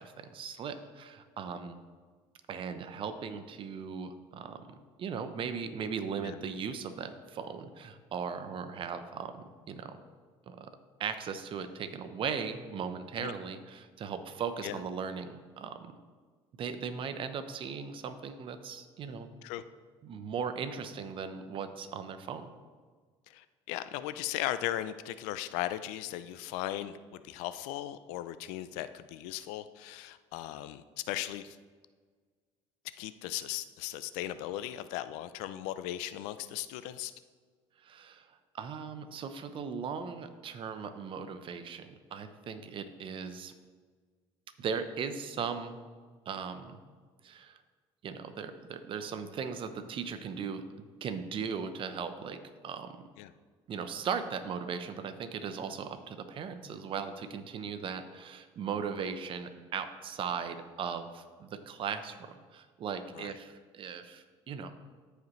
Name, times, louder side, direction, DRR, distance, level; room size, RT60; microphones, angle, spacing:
voice 1, 0.0-1.8 2.5-10.0 10.5-10.7 11.0-16.0 16.6-19.3 20.0-22.5 37.8-38.3 38.5-43.5 44.6-45.8 46.3-46.8 47.2-47.6 48.0-50.7 51.0-53.1 53.7-64.7, right 6 dB, 50° right, 9 dB, 0.8 m, -38 dB
voice 2, 23.3-31.6 33.0-37.1 53.2-53.3 63.1-63.3, left 13 dB, 90° left, 13 dB, 0.4 m, -37 dB
14.0 x 5.1 x 3.1 m, 1.5 s
cardioid pair, 105°, 12 cm